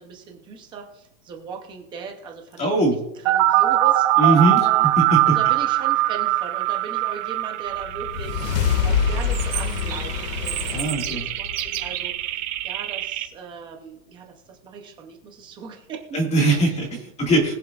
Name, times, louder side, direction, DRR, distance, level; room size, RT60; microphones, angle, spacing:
voice 1, 0.0-2.7 3.2-4.9 5.2-8.4 8.8-12.1 12.6-16.2 16.9-17.0, right 5 dB, 10° right, 2 dB, 0.5 m, -38 dB
voice 2, 2.6-3.0 4.2-4.7 5.0-5.4 10.7-11.2 16.1-17.6, right 2 dB, 15° left, 1 dB, 1.8 m, -21 dB
sound 1, 3.3-13.2, right 15 dB, 45° right, 2.5 m, -22 dB
sound 2, 7.8-12.3, left 7 dB, 85° left, 1.9 m, -26 dB
Chirp tweet, 9.2-12.2, right 12 dB, 80° right, 2.3 m, -33 dB
21.0 x 7.1 x 2.4 m, 0.83 s
supercardioid pair, 170°, 48 cm